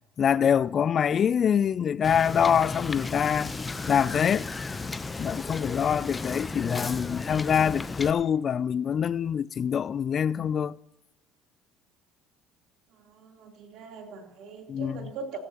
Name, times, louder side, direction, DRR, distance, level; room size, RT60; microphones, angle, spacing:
voice 1, 0.2-3.5 3.9-4.5 5.2-10.8 14.7-14.9, left 8 dB, 45° left, 0.3 m, -25 dB
Wind / Boat Water vehicle, 2.0-8.1, left 3 dB, 20° left, 0.7 m, -34 dB
voice 2, 12.9-15.4, right 5 dB, 65° right, 3.4 m, -41 dB
17.5 x 16.5 x 3.0 m
supercardioid pair, 85°, 0 cm